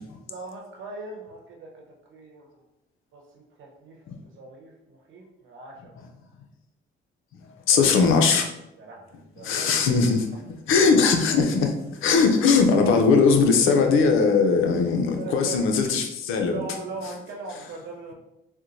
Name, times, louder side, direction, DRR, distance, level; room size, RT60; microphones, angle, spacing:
voice 1, 0.3-2.6 3.1-6.0 7.7-7.9 8.8-9.7 15.2-15.6 16.3-18.1, right 3 dB, 70° right, -1 dB, 0.9 m, -40 dB
voice 2, 7.7-8.5 9.4-10.3 10.7-16.6, left 5 dB, 75° left, 4 dB, 0.6 m, -20 dB
4.3 x 2.1 x 2.6 m, 0.86 s
cardioid pair, 85°, 21 cm